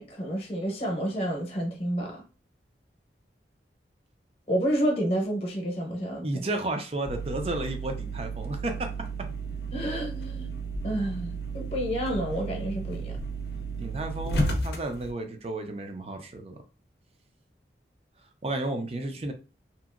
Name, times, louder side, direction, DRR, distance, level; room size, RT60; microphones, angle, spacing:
voice 1, 0.0-2.2 4.5-6.4 9.7-10.5 10.8-13.2, equal, 35° left, 0.8 m, -29 dB
voice 2, 6.2-8.9 13.8-16.6 18.4-19.3, right 2 dB, 35° right, 0.5 m, -32 dB
sound 1, 7.1-15.1, right 3 dB, 70° left, 0.6 m, -33 dB
2.9 x 2.6 x 2.4 m
head